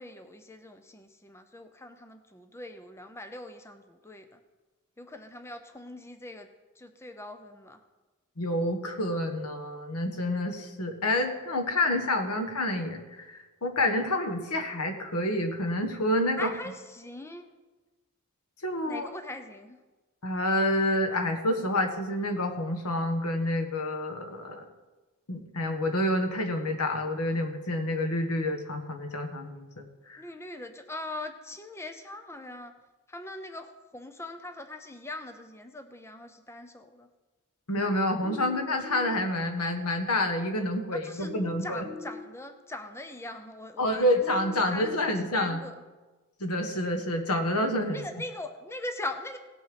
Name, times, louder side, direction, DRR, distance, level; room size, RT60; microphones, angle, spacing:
voice 1, 0.0-4.4 5.0-6.5 6.8-7.8 16.4-17.5 18.9-19.8 30.2-32.7 33.1-37.1 40.9-41.3 41.6-44.1 44.7-45.8 47.9-49.4, left 1 dB, 10° left, 7 dB, 0.7 m, -41 dB
voice 2, 8.4-16.5 18.6-19.1 20.2-24.6 25.3-30.2 37.7-41.8 43.8-45.6 46.4-48.0, left 1 dB, 85° left, 5 dB, 1.5 m, -28 dB
sound 1, 38.2-39.2 41.2-42.2 44.2-45.2, left 4 dB, 50° right, 2.0 m, -41 dB
17.5 x 6.5 x 5.2 m, 1.2 s
head